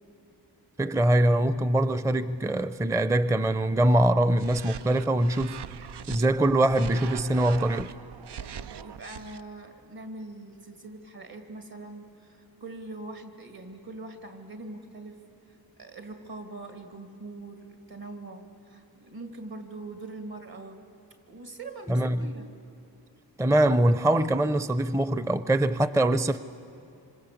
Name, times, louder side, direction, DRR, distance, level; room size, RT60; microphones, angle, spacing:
voice 1, 0.8-5.6 6.1-7.9 21.9-22.2 23.4-26.4, right 1 dB, 10° right, 0.5 m, -23 dB
sound 1, 4.3-6.3 6.7-9.4, right 8 dB, 85° right, 0.6 m, -41 dB
voice 2, 8.8-15.2 15.8-20.8 21.3-22.5, right 2 dB, 65° right, 2.9 m, -42 dB
26.5 x 26.5 x 8.5 m
wide cardioid pair, 80°, 39 cm